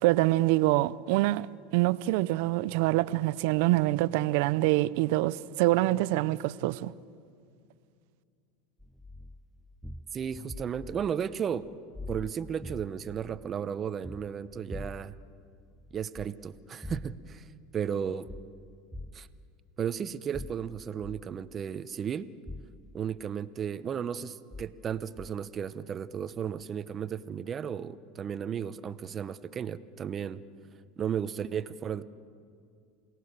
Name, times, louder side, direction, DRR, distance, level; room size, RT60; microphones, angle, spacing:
voice 1, 0.0-1.5 1.7-6.9, right 18 dB, 70° right, 0.6 m, -25 dB
sound 1, 8.8-11.2 11.5-13.5 13.8-15.2 15.6-16.3 16.7-17.4 18.3-18.5 18.9-19.2 20.3-21.3 22.5-22.7 23.2-23.3 24.5-24.7 25.2-25.3 26.6-26.7, left 1 dB, ahead, 0.7 m, -44 dB
voice 2, 10.1-11.6 12.1-15.1 15.9-17.4 17.7-18.3 19.1-19.3 19.8-22.3 22.9-30.4 31.0-32.1, right 8 dB, 30° right, 0.8 m, -34 dB
28.0 x 18.0 x 6.7 m
supercardioid pair, 110°, 0 cm